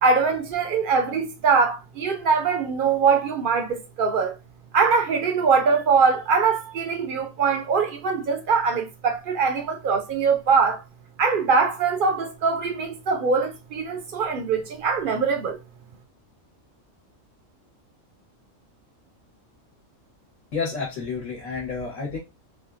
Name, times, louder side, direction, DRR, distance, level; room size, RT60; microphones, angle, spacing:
voice 1, 0.0-4.3 4.7-10.8 11.2-15.6, right 5 dB, 55° right, 0.6 m, -22 dB
voice 2, 20.5-22.2, left 5 dB, 70° left, 1.5 m, -30 dB
3.6 x 2.3 x 2.5 m
omnidirectional pair, 1.4 m